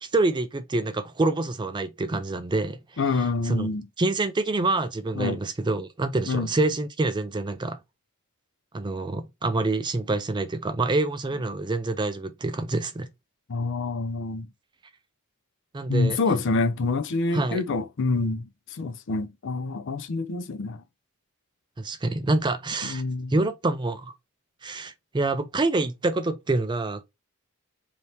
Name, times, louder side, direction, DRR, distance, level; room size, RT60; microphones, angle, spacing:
voice 1, 0.0-2.8 3.0-3.7 4.0-7.8 8.7-13.1 15.7-16.2 17.3-17.6 21.8-23.0 23.3-24.1 24.6-27.0, right 2 dB, 20° right, 0.4 m, -26 dB
voice 2, 3.0-3.8 5.2-5.4 6.3-6.5 13.5-14.5 15.9-18.5 18.8-20.8 22.8-23.3, left 3 dB, 55° left, 0.5 m, -26 dB
3.3 x 2.8 x 4.2 m
head